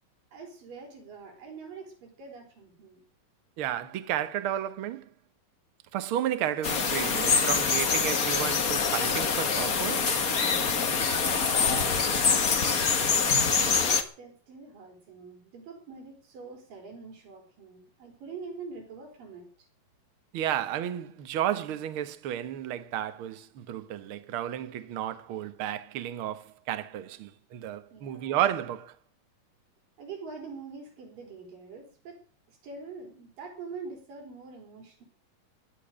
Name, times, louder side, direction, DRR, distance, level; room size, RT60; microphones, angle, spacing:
voice 1, 0.3-3.0 10.5-12.0 12.4-12.8 13.5-19.7 27.9-28.4 30.0-32.2 32.5-35.0, right 4 dB, 80° right, 5.9 m, -45 dB
voice 2, 3.6-5.0 5.9-10.2 20.3-28.9, right 11 dB, 60° right, 1.4 m, -32 dB
sound 1, 6.6-14.0, left 5 dB, 45° left, 1.2 m, -25 dB
17.0 x 11.0 x 6.3 m
omnidirectional pair, 3.9 m